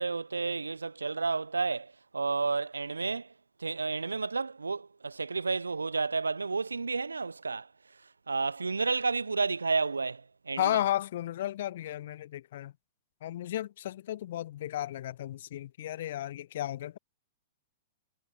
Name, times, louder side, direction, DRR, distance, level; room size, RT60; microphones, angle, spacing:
voice 1, 0.0-3.3 3.6-7.7 8.3-10.8, right 4 dB, 75° right, 1.0 m, -31 dB
voice 2, 10.6-12.7 13.2-17.0, left 13 dB, 50° left, 0.4 m, -33 dB
figure-of-eight pair, 105°, 0 cm